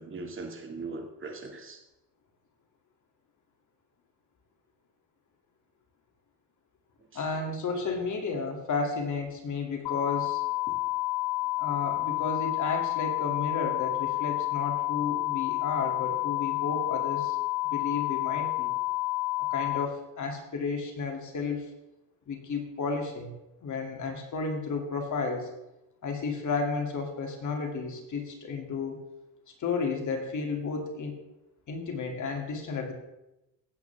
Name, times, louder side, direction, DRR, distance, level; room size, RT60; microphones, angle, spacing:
voice 1, 0.0-1.8 7.0-7.4, right 3 dB, 30° right, 3 dB, 2.2 m, -40 dB
voice 2, 7.1-10.4 11.6-17.4 17.6-18.7 19.5-21.7 22.3-23.3 23.6-25.5 26.0-29.0 29.6-31.2 31.7-32.9, left 4 dB, 50° left, 2 dB, 2.7 m, -32 dB
sound 1, 9.9-19.9, left 20 dB, 80° left, 0.6 m, -30 dB
17.0 x 8.2 x 3.5 m, 0.93 s
cardioid pair, 100°, 39 cm